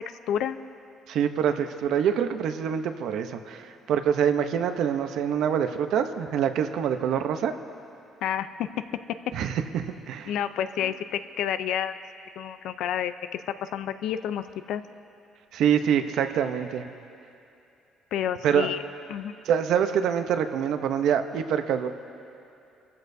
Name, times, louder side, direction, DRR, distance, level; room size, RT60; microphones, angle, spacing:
voice 1, 0.3-0.6 8.2-8.7 10.3-12.0 12.4-14.8 18.1-18.8 19.1-19.3, left 10 dB, 75° left, 11 dB, 0.5 m, -29 dB
voice 2, 1.1-7.5 9.3-10.3 15.5-16.9 18.4-18.7 19.5-21.9, right 8 dB, 70° right, 8 dB, 0.8 m, -25 dB
25.5 x 14.5 x 2.7 m, 2.8 s
cardioid pair, 130°, 0 cm